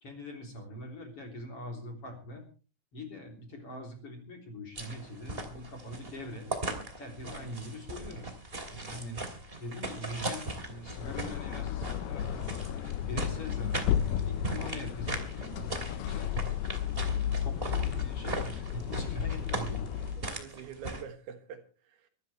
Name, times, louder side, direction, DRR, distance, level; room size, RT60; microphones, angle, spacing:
voice 1, 0.0-2.4 2.9-6.5 7.0-8.3 8.7-9.2 9.6-12.5 13.0-16.3 17.0-19.9, left 1 dB, 35° left, 4.2 m, -43 dB
sound 1, 4.8-21.0, right 2 dB, 20° right, 2.1 m, -39 dB
sound 2, 10.8-20.3, left 10 dB, 75° left, 2.6 m, -33 dB
voice 2, 20.4-22.1, right 7 dB, 70° right, 3.3 m, -45 dB
24.5 x 13.5 x 3.3 m
omnidirectional pair, 4.9 m